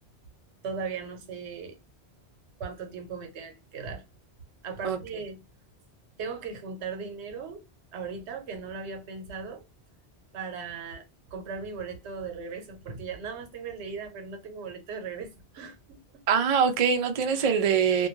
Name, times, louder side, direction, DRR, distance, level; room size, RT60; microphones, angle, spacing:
voice 1, 0.6-1.8 2.6-4.0 4.6-5.4 6.2-7.6 7.9-9.6 10.3-11.0 11.3-16.0, right 5 dB, 85° right, 1.0 m, -37 dB
voice 2, 16.3-18.1, right 7 dB, 55° right, 0.4 m, -23 dB
2.2 x 2.2 x 3.0 m
omnidirectional pair, 1.1 m